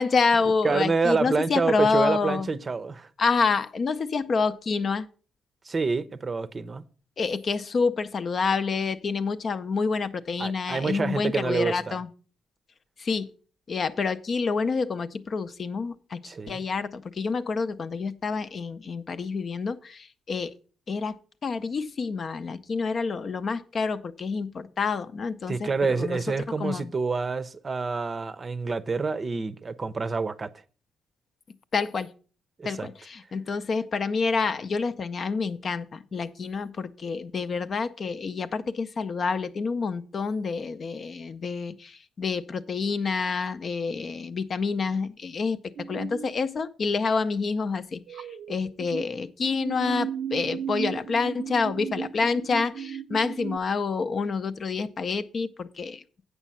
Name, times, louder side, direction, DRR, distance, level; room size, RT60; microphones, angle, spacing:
voice 1, 0.0-2.5 3.2-5.1 7.2-12.1 13.0-13.3 13.7-20.5 20.9-21.1 21.4-26.2 26.5-26.9 31.7-32.1 32.6-45.6 45.9-56.0, left 4 dB, 45° left, 0.6 m, -28 dB
voice 2, 0.6-3.1 5.6-6.8 10.4-12.0 16.2-16.6 25.5-30.5 32.6-32.9, right 4 dB, 35° right, 0.6 m, -27 dB
sound 1, 45.8-46.3 48.1-49.1 49.4-53.6, right 8 dB, 75° right, 0.5 m, -35 dB
8.2 x 6.2 x 5.6 m
cardioid pair, 90°, 0 cm